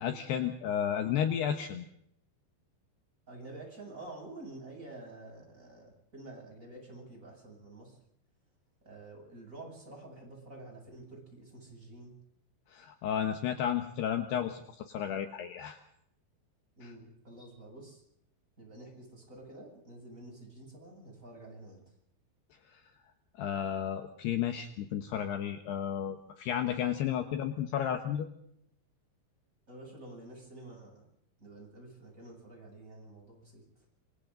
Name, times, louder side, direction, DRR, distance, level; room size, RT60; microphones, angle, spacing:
voice 1, 0.0-1.9 12.7-15.8 16.8-16.9 22.7-22.8 23.4-28.3, left 9 dB, 70° left, 7 dB, 3.0 m, -33 dB
voice 2, 3.3-8.0 8.8-12.1 16.8-18.0 18.6-21.9 29.7-31.0 31.4-33.8, right 2 dB, 15° right, 0 dB, 8.2 m, -49 dB
27.0 x 26.5 x 3.9 m, 0.71 s
omnidirectional pair, 5.4 m